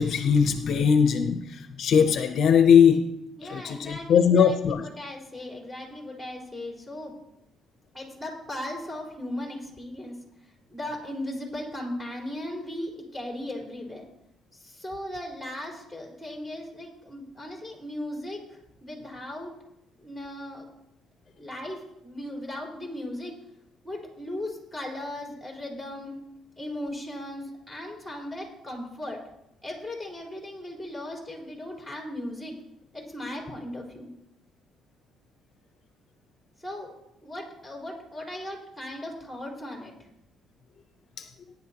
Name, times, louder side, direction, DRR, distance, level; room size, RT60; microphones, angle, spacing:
voice 1, 0.0-3.1 3.4-4.9 41.2-41.3, left 7 dB, 60° left, 8 dB, 0.7 m, -20 dB
voice 2, 3.4-7.2 7.9-14.1 14.5-19.5 20.0-20.6 21.3-23.4 23.8-26.1 26.6-29.2 29.6-32.5 32.9-34.1 36.6-36.9 37.2-39.9, left 1 dB, ahead, -1 dB, 4.2 m, -37 dB
18.0 x 10.5 x 2.9 m, 0.82 s
cardioid pair, 115°, 0 cm